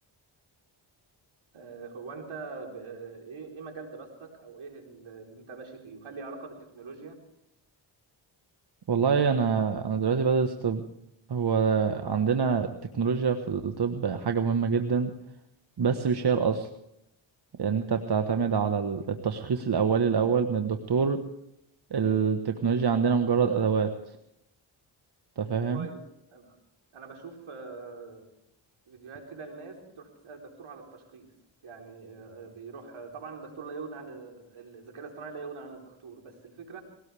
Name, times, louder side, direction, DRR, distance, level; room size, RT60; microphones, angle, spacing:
voice 1, 1.5-7.2 25.7-26.0 26.3-26.6 26.9-28.3 28.9-31.3 31.6-36.8, right 4 dB, 75° right, 1 dB, 4.1 m, -43 dB
voice 2, 8.9-10.8 11.3-15.1 15.8-16.7 17.6-21.2 21.9-23.9 25.4-25.9, right 6 dB, 50° right, 6 dB, 1.4 m, -25 dB
21.0 x 18.0 x 3.4 m, 0.80 s
cardioid pair, 55°, 49 cm